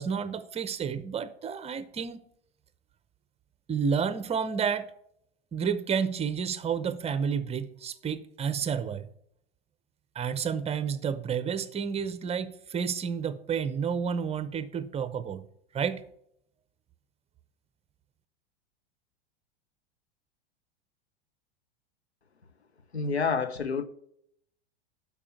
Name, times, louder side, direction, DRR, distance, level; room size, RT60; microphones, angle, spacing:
voice 1, 0.0-2.2 3.7-4.9 5.5-9.1 10.1-15.4 15.7-16.0, right 6 dB, 20° right, 0.7 m, -30 dB
voice 2, 22.9-23.8, left 5 dB, 90° left, 0.9 m, -28 dB
12.0 x 4.8 x 5.7 m
figure-of-eight pair, 90°, 31 cm